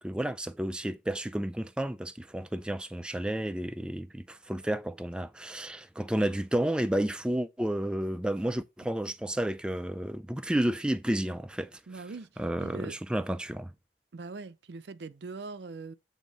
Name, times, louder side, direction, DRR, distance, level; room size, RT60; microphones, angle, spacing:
voice 1, 0.0-12.0 12.4-13.7, right 1 dB, 5° right, 0.3 m, -31 dB
voice 2, 11.9-12.3 12.6-13.0 14.1-15.9, right 3 dB, 70° right, 0.5 m, -41 dB
8.3 x 3.6 x 5.2 m
head